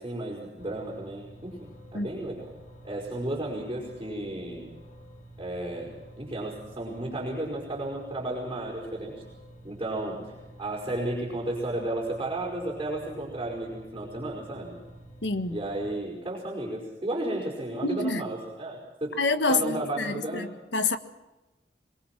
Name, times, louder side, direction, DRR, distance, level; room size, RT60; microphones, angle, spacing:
voice 1, 0.0-2.4 2.8-4.7 5.4-9.2 9.6-14.7 15.5-19.1 19.5-20.5, right 1 dB, 25° right, 5.2 m, -33 dB
sound 1, 0.6-16.0, right 1 dB, 40° left, 4.4 m, -49 dB
voice 2, 15.2-15.6 17.8-18.2 19.2-21.0, left 3 dB, 75° left, 1.5 m, -27 dB
23.0 x 22.0 x 6.0 m
head